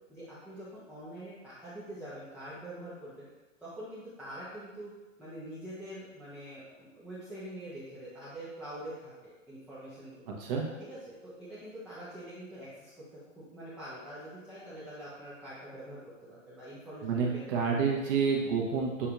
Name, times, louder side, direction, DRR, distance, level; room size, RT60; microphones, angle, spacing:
voice 1, 0.1-3.3 3.6-4.9 5.2-10.3 10.9-17.4, right 1 dB, 5° right, -12 dB, 0.7 m, -45 dB
voice 2, 17.0-19.1, right 5 dB, 40° right, -2 dB, 1.1 m, -29 dB
6.8 x 2.7 x 2.4 m, 1.2 s
hypercardioid pair, 125°, 39 cm